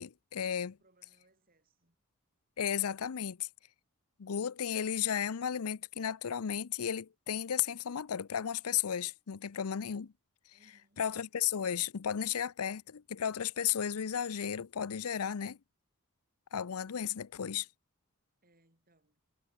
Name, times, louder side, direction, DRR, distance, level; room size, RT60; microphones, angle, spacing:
voice 1, 0.0-0.8 2.6-3.5 4.2-10.1 11.0-15.6 16.5-17.7, left 8 dB, 80° left, 0.6 m, -34 dB
voice 2, 0.8-2.0 10.5-11.1 18.4-19.2, right 1 dB, 40° right, 7.1 m, -69 dB
head